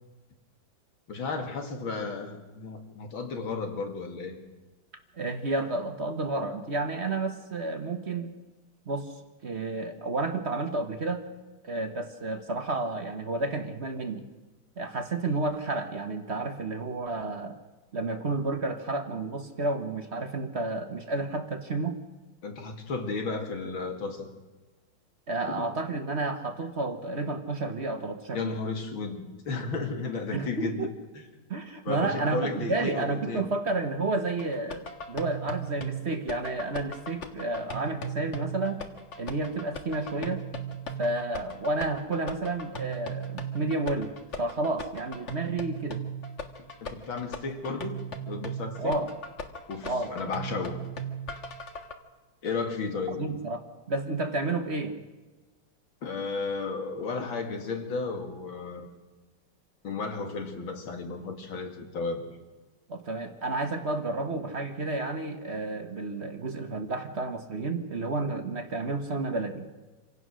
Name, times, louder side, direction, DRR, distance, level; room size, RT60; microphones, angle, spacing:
voice 1, 1.1-4.4 22.4-24.3 25.5-25.6 28.3-31.2 31.8-33.5 46.8-49.0 49.7-50.8 52.4-53.2 56.0-58.9 59.8-62.2, left 4 dB, 65° left, 5 dB, 2.9 m, -33 dB
voice 2, 5.2-8.3 8.9-9.1 9.4-11.2 11.6-14.2 14.8-17.6 17.9-22.0 25.3-28.6 30.3-30.9 31.5-38.8 39.2-40.5 41.0-46.0 48.8-49.1 49.8-50.1 53.2-55.0 62.9-69.7, right 2 dB, 40° right, 7 dB, 1.2 m, -31 dB
sound 1, 34.4-51.9, right 3 dB, 35° left, 1.6 m, -38 dB
27.0 x 17.0 x 6.3 m, 1.2 s
omnidirectional pair, 2.4 m